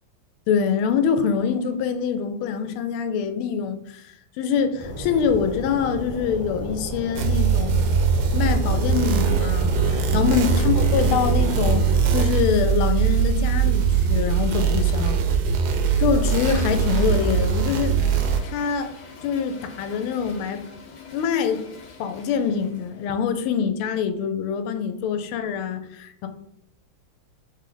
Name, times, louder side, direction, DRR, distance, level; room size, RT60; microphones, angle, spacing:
voice 1, 0.5-7.9 8.3-11.8 12.1-15.2 16.0-18.0 18.4-18.9 19.2-20.6 21.1-21.6 22.0-26.3, left 7 dB, 85° left, 7 dB, 1.4 m, -25 dB
sound 1, 4.8-12.0, right 1 dB, 15° right, 0.6 m, -32 dB
sound 2, 7.2-18.4, right 6 dB, 80° right, 1.4 m, -21 dB
Toilet flush, 15.9-23.2, left 4 dB, 55° left, 1.1 m, -43 dB
3.6 x 3.2 x 3.8 m, 0.74 s
omnidirectional pair, 2.3 m